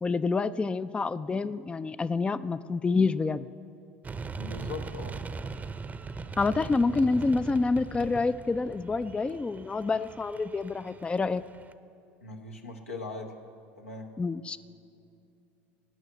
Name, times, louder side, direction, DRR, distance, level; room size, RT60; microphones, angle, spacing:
voice 1, 0.0-3.5 6.4-11.4 14.2-14.6, left 4 dB, 15° left, 15 dB, 0.3 m, -27 dB
sound 1, 4.0-11.7, right 4 dB, 20° right, 0.7 m, -40 dB
voice 2, 4.4-5.2 12.2-13.3 13.8-14.1, left 3 dB, 85° left, 2 dB, 1.1 m, -39 dB
18.0 x 6.3 x 7.9 m, 2.5 s
figure-of-eight pair, 70°, 7 cm